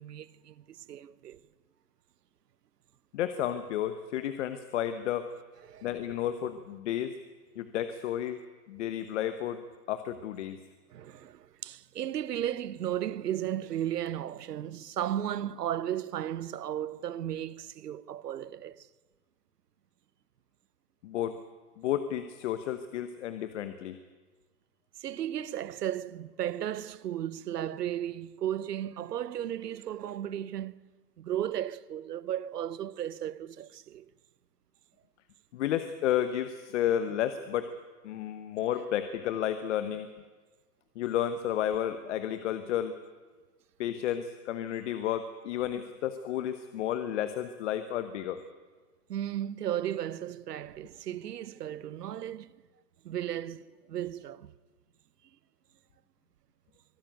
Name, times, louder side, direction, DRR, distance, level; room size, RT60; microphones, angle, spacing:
voice 1, 0.0-1.4 5.7-5.9 10.9-18.9 25.0-30.8 31.2-34.1 49.1-52.6 53.0-54.5, right 11 dB, 90° right, 0.9 m, -35 dB
voice 2, 3.1-5.3 5.8-7.1 7.6-8.4 8.7-9.6 9.9-10.6 21.0-21.3 21.8-24.0 35.5-37.7 38.0-40.1 41.0-42.9 43.8-48.4, left 11 dB, 50° left, 1.2 m, -32 dB
23.5 x 13.0 x 9.3 m
hypercardioid pair, 150°, 46 cm